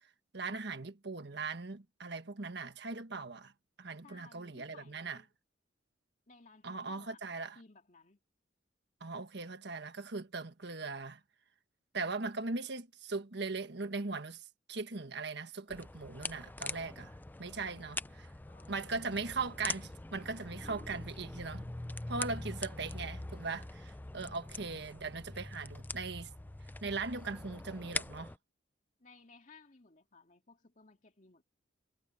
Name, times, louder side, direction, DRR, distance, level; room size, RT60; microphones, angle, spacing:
voice 1, 0.3-3.5 3.8-5.2 6.6-7.6 9.0-11.2 11.9-17.1 17.4-18.0 18.7-21.7 22.1-26.3 26.8-28.3, right 4 dB, 60° right, 1.4 m, -39 dB
voice 2, 4.0-5.3 6.3-7.2 7.5-8.2 17.6-19.4 22.3-22.5 24.2-24.7 29.0-31.4, left 3 dB, 40° left, 2.6 m, -60 dB
sound 1, 15.7-28.4, left 2 dB, 10° left, 0.4 m, -43 dB
head